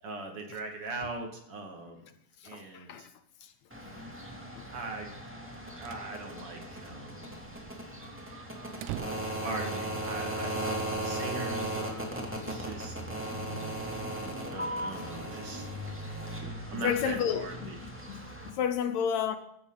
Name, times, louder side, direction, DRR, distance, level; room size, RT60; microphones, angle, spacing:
voice 1, 0.0-2.0 2.4-3.1 4.7-5.2 5.8-7.4 9.0-12.9 14.5-15.7 16.7-17.8, right 2 dB, 50° right, 2.9 m, -40 dB
voice 2, 2.4-3.1 3.4-3.5 4.6-4.7 16.7-17.5 17.8-19.4, left 8 dB, 75° left, 1.9 m, -31 dB
sound 1, 3.7-18.5, right 1 dB, 5° right, 2.3 m, -37 dB
sound 2, 5.9-6.1 6.4-6.5 6.8-6.9 7.3-10.3, right 12 dB, 85° right, 2.2 m, -44 dB
15.5 x 15.0 x 4.0 m
omnidirectional pair, 3.5 m